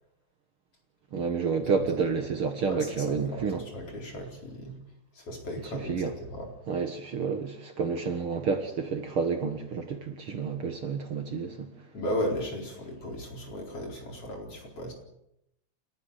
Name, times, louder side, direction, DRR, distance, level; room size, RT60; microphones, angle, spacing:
voice 1, 1.1-3.6 5.7-6.1 6.7-11.7, right 5 dB, 50° right, 2.3 m, -30 dB
voice 2, 2.7-4.7 5.2-6.5 11.9-14.9, equal, 50° left, 5.3 m, -35 dB
30.0 x 13.5 x 6.8 m
omnidirectional pair, 3.3 m